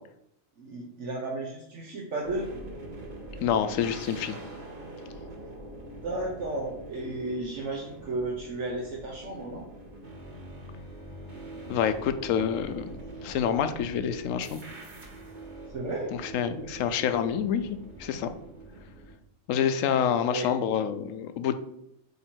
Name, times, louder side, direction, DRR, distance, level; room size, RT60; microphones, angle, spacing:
voice 1, 0.6-2.5 5.9-9.6 15.7-16.1 19.9-20.5, right 2 dB, 65° right, -2 dB, 1.3 m, -34 dB
sound 1, 2.2-19.1, right 2 dB, 35° right, 1.3 m, -44 dB
voice 2, 3.4-4.4 11.7-12.9 13.2-14.6 16.2-18.3 19.5-21.5, left 8 dB, 75° left, 10 dB, 1.0 m, -27 dB
8.1 x 2.9 x 4.5 m, 0.79 s
omnidirectional pair, 1.4 m